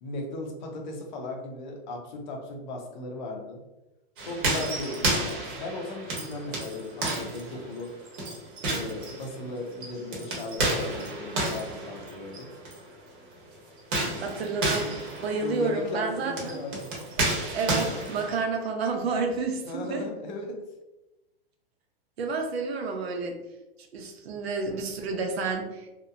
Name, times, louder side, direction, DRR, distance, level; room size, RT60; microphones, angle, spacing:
voice 1, 0.0-3.6 4.2-7.9 8.6-12.5 15.4-16.9 19.6-20.6, left 2 dB, 50° left, 1 dB, 0.7 m, -37 dB
sound 1, 4.2-12.8 13.8-18.4, right 2 dB, 55° right, 1.0 m, -31 dB
voice 2, 14.2-14.9 15.2-16.6 17.5-20.1 22.2-23.4 23.9-25.9, right 4 dB, 85° right, 3 dB, 0.7 m, -30 dB
2.8 x 2.1 x 2.3 m, 1.0 s
hypercardioid pair, 155°, 31 cm